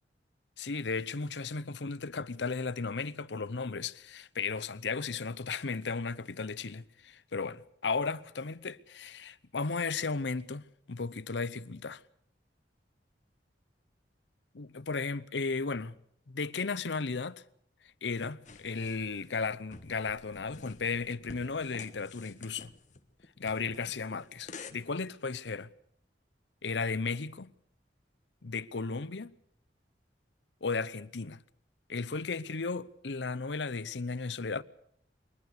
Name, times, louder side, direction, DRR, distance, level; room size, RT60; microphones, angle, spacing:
voice 1, 0.6-12.0 14.6-16.0 16.3-17.4 18.0-22.7 23.4-25.7 26.6-27.5 28.4-29.4 30.6-31.4 31.9-34.6, left 4 dB, 80° left, 0.8 m, -35 dB
sound 1, 18.5-24.7, left 4 dB, 45° left, 1.5 m, -50 dB
23.0 x 20.0 x 6.7 m
head